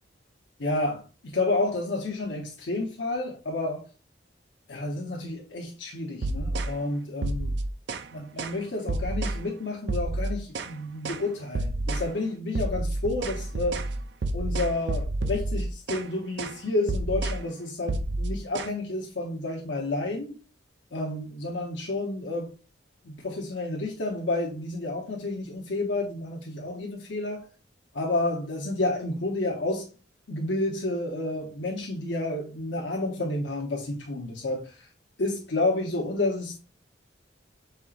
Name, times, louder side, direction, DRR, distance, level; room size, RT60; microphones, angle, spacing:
voice 1, 0.6-3.8 4.7-7.6 8.1-13.9 14.3-20.4 20.9-22.5 23.0-27.5 27.9-29.9 30.3-34.9 35.2-36.6, left 2 dB, 75° left, 0.9 m, -30 dB
sound 1, 6.2-6.8 7.2-8.1 8.4-8.6 8.9-9.4 9.9-10.8 11.0-11.3 11.5-12.1 12.5-16.1 16.4-16.6 16.9-17.4 17.9-18.7, right 2 dB, 65° right, 0.5 m, -29 dB
5.4 x 3.8 x 2.4 m
head